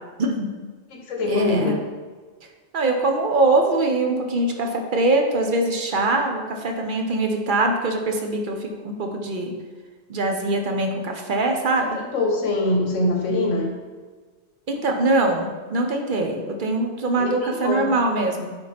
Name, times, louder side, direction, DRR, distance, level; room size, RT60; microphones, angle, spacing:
voice 1, 0.2-0.5 1.3-1.8 2.7-9.6 10.1-12.0 14.7-18.5, right 2 dB, 50° right, 3 dB, 0.8 m, -23 dB
voice 2, 0.9-1.8 12.1-13.7 17.2-17.9, left 2 dB, 85° left, 0 dB, 1.5 m, -23 dB
9.5 x 3.9 x 3.4 m, 1.4 s
omnidirectional pair, 1.3 m